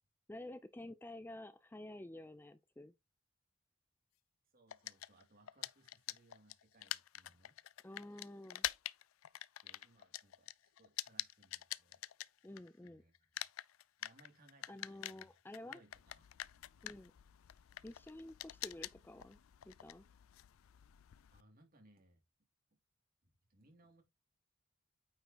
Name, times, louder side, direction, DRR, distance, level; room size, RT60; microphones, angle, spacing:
voice 1, 0.3-2.9 7.8-8.7 12.4-13.0 14.7-15.8 16.8-17.1 17.8-19.4 19.7-20.0, left 1 dB, 10° left, 0.4 m, -50 dB
voice 2, 4.5-7.6 9.6-12.0 12.8-13.4 14.0-15.4 15.6-16.9 21.3-22.2 23.5-24.0, right 2 dB, 45° right, 2.6 m, -67 dB
sound 1, 4.7-12.9 13.1-21.4, left 14 dB, 90° left, 0.4 m, -46 dB
9.0 x 5.0 x 2.9 m
head